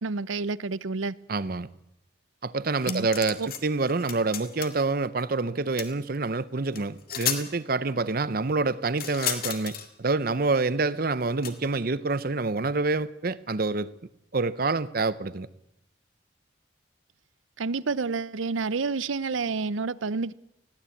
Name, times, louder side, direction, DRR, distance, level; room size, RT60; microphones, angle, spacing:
voice 1, 0.0-1.1 2.9-3.1 3.4-3.5 17.6-20.3, right 4 dB, 85° right, 0.7 m, -29 dB
voice 2, 1.3-1.7 2.4-13.9 14.3-15.5, right 3 dB, 45° right, 0.7 m, -27 dB
sound 1, 2.7-3.6 3.9-4.8 5.8-5.9 6.8-6.9 7.1-7.4 9.0-9.9 11.4-11.5, left 8 dB, 50° left, 2.1 m, -32 dB
20.5 x 16.0 x 8.5 m
head